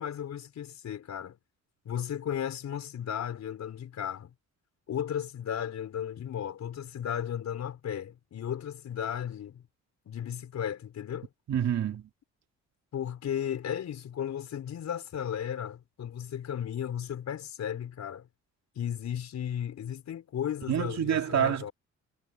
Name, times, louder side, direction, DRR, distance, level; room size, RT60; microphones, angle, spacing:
voice 1, 0.0-1.4 1.8-4.3 4.9-9.6 10.1-11.3 12.9-18.3 18.7-21.7, left 9 dB, 65° left, 4.5 m, -35 dB
voice 2, 11.5-12.1 20.7-21.7, right 9 dB, 60° right, 2.8 m, -27 dB
cardioid pair, 90°, 30 cm